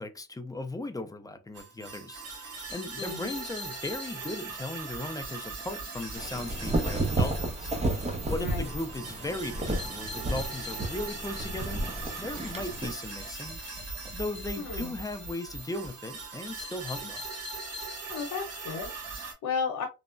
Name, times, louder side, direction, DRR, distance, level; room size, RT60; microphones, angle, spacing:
voice 1, 0.0-11.8 12.2-17.3, left 2 dB, 10° left, 0.4 m, -37 dB
sound 1, 1.5-19.3, right 3 dB, 55° right, 1.6 m, -40 dB
voice 2, 3.0-3.3 8.3-8.7 14.6-14.9 18.1-19.9, left 5 dB, 80° left, 0.8 m, -34 dB
sound 2, 6.1-12.9, right 2 dB, 20° right, 0.7 m, -32 dB
3.2 x 2.0 x 2.4 m
cardioid pair, 90°, 30 cm